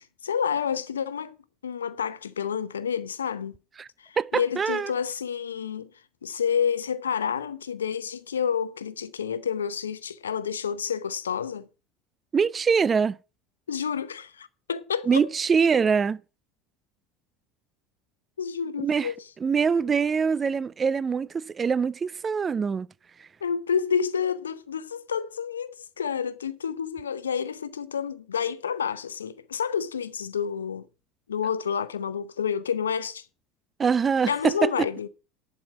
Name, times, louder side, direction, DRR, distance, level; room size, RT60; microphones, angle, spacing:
voice 1, 0.0-1.4 1.6-3.5 4.0-5.9 6.2-11.7 13.7-15.2 18.4-19.2 23.4-30.9 31.3-33.3 34.3-35.1, left 7 dB, 85° left, 0.7 m, -29 dB
voice 2, 4.2-4.9 12.3-13.2 15.1-16.2 18.8-19.1 19.4-22.9 33.8-34.9, right 6 dB, 30° right, 0.5 m, -24 dB
11.0 x 5.0 x 8.4 m
figure-of-eight pair, 70°, 0 cm